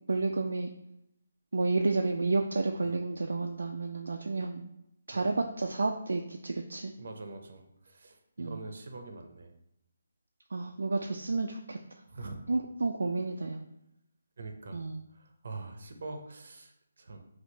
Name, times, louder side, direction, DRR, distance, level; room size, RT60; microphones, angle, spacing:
voice 1, 0.1-0.7 1.5-4.7 5.1-6.9 8.4-8.6 10.5-11.8 12.5-13.6 14.7-15.0, right 3 dB, 80° right, 3 dB, 0.3 m, -31 dB
voice 2, 7.0-9.5 12.1-12.4 14.4-14.8 15.1-17.2, right 3 dB, 65° right, 5 dB, 0.7 m, -44 dB
4.3 x 2.4 x 4.0 m, 0.83 s
figure-of-eight pair, 155°, 0 cm